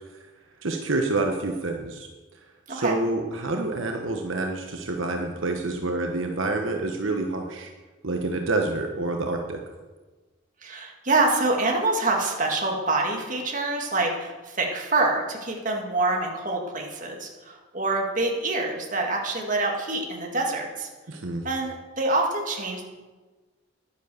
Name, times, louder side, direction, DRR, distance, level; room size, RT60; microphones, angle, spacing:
voice 1, 0.6-2.1 2.7-7.7 8.0-9.6 21.1-21.4, right 2 dB, 70° right, 3 dB, 1.1 m, -27 dB
voice 2, 10.6-20.9 21.4-22.8, right 2 dB, 40° right, 1 dB, 1.9 m, -26 dB
10.5 x 10.0 x 6.9 m, 1.3 s
head